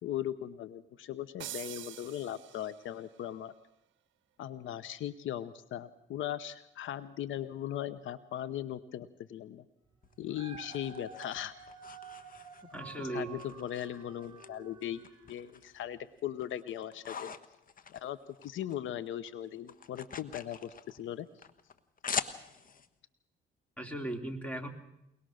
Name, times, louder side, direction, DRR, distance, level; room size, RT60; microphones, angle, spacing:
voice 1, 0.0-3.5 4.4-9.6 10.2-11.5 13.0-17.3 17.9-21.3, left 11 dB, 75° left, 15 dB, 0.9 m, -39 dB
sound 1, 1.4-3.0, right 14 dB, 75° right, 0.7 m, -45 dB
sound 2, 10.0-12.9 13.4-14.5 14.8-15.8 16.2-18.8 19.1-22.9, left 6 dB, 45° left, 1.3 m, -43 dB
Dog, 10.1-15.4 16.0-16.1, right 4 dB, 20° right, 4.0 m, -50 dB
voice 2, 12.7-13.3 23.8-24.7, right 1 dB, 5° left, 5 dB, 3.1 m, -37 dB
23.0 x 20.0 x 6.4 m, 0.84 s
cardioid pair, 90°, 20 cm